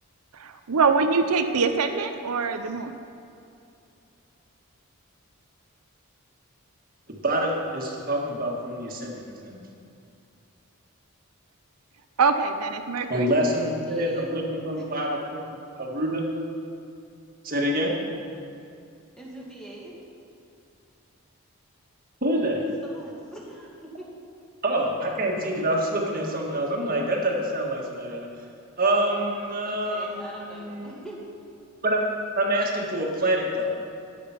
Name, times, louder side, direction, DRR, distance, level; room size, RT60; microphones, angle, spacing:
voice 1, 0.3-3.0 12.2-13.3, right 4 dB, 85° right, 7 dB, 0.6 m, -24 dB
voice 2, 7.1-9.7 13.1-15.5 15.8-16.3 17.4-18.0 22.2-22.6 24.6-28.3 28.8-30.9 31.8-32.0 32.3-33.7, right 1 dB, 40° right, -1 dB, 1.7 m, -26 dB
voice 3, 13.7-14.3 14.7-14.8 19.2-19.9 22.6-24.1 29.6-31.2, right 1 dB, 5° left, -4 dB, 2.1 m, -43 dB
12.5 x 9.0 x 5.8 m, 2.6 s
head